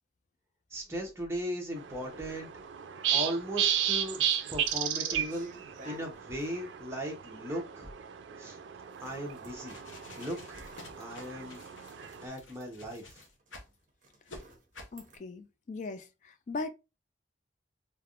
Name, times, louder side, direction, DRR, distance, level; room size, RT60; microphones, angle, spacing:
voice 1, 0.7-2.5 3.1-4.2 4.5-5.5 5.8-7.9 8.4-8.6 9.0-9.8 10.2-10.6 11.0-11.6 12.2-13.1, equal, 15° right, 0.8 m, -37 dB
sound 1, 1.8-12.3, right 9 dB, 70° right, 0.4 m, -34 dB
sound 2, 3.6-3.8 4.1-6.6 8.9-11.5 11.9-12.1 12.3-15.2, right 2 dB, 40° right, 0.8 m, -55 dB
sound 3, 9.4-13.7 14.3-14.4 14.7-15.0, left 2 dB, 85° left, 0.7 m, -50 dB
voice 2, 14.9-16.7, left 3 dB, 40° left, 0.3 m, -39 dB
3.3 x 2.4 x 2.4 m
head